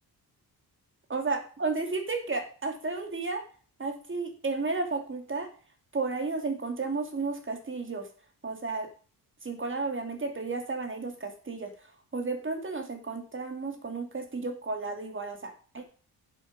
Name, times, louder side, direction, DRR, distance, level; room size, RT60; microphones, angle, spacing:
voice 1, 1.1-3.4 3.8-5.5 5.9-8.1 8.4-8.9 9.4-11.7 12.1-15.8, right 3 dB, 30° right, 4 dB, 2.6 m, -33 dB
11.0 x 7.7 x 5.3 m, 0.40 s
wide cardioid pair, 120°, 38 cm